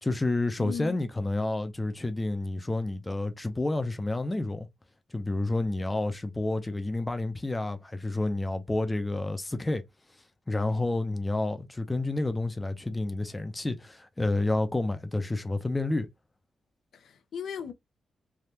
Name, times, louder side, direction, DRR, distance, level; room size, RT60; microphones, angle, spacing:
voice 1, 0.0-4.7 5.1-9.8 10.5-16.1, left 2 dB, 15° left, 0.6 m, -29 dB
voice 2, 0.6-1.0 16.9-17.7, left 7 dB, 75° left, 0.6 m, -37 dB
3.4 x 2.3 x 2.7 m
cardioid pair, 105°, 0 cm